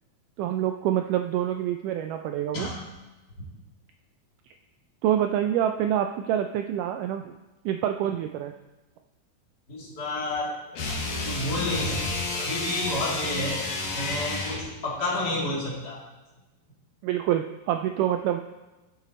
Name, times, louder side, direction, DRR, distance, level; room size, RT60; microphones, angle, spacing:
voice 1, 0.4-2.7 5.0-7.3 7.7-8.5 17.0-18.4, right 11 dB, 85° right, 6 dB, 1.8 m, -26 dB
voice 2, 9.7-10.6 11.2-13.6 13.9-16.0, left 2 dB, 30° left, -4 dB, 2.7 m, -30 dB
sound 1, 10.7-14.7, left 3 dB, 60° left, 2.6 m, -30 dB
14.0 x 8.0 x 4.2 m, 1.1 s
omnidirectional pair, 4.2 m